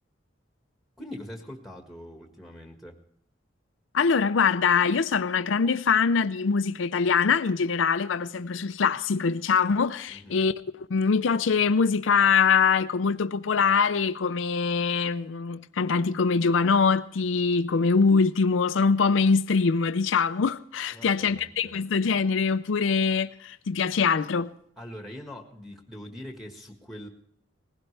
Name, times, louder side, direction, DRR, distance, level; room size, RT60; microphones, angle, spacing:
voice 1, 1.0-3.0 10.1-10.4 20.9-21.7 24.8-27.1, left 1 dB, ahead, 1.6 m, -42 dB
voice 2, 3.9-10.5 10.9-24.5, left 5 dB, 85° left, 0.5 m, -23 dB
19.5 x 16.0 x 3.3 m
head